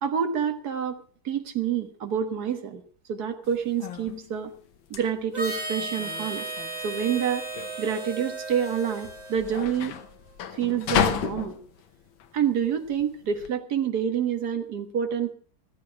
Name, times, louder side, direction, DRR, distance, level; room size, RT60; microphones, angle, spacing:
voice 1, 0.0-2.8 3.1-4.5 4.9-6.5 6.8-7.5 7.8-10.0 10.5-11.6 12.3-15.3, right 8 dB, 50° right, 6 dB, 1.9 m, -27 dB
sound 1, 3.4-13.5, left 9 dB, 70° left, 1.7 m, -33 dB
Harmonica, 5.3-10.1, right 2 dB, 20° right, 2.6 m, -35 dB
15.0 x 13.5 x 4.8 m, 0.42 s
omnidirectional pair, 2.3 m